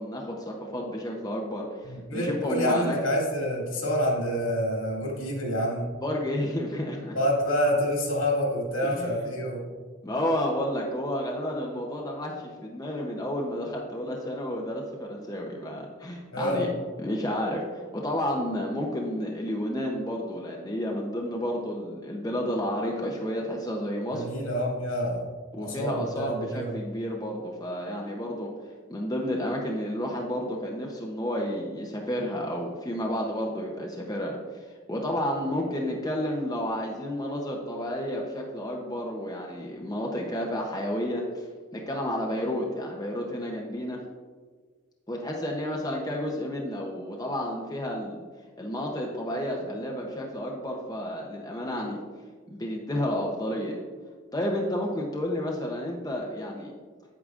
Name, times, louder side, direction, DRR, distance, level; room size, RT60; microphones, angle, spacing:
voice 1, 0.0-3.0 6.0-7.2 8.8-9.2 10.0-16.7 17.0-24.3 25.5-28.5 28.9-44.0 45.1-48.2 48.6-52.0 52.5-53.8 54.3-56.7, equal, 15° left, -1 dB, 0.6 m, -31 dB
voice 2, 1.9-5.9 7.2-9.6 16.3-16.6 24.1-25.3 25.6-26.7, equal, 75° left, -2 dB, 2.2 m, -27 dB
8.6 x 8.5 x 2.5 m, 1.5 s
head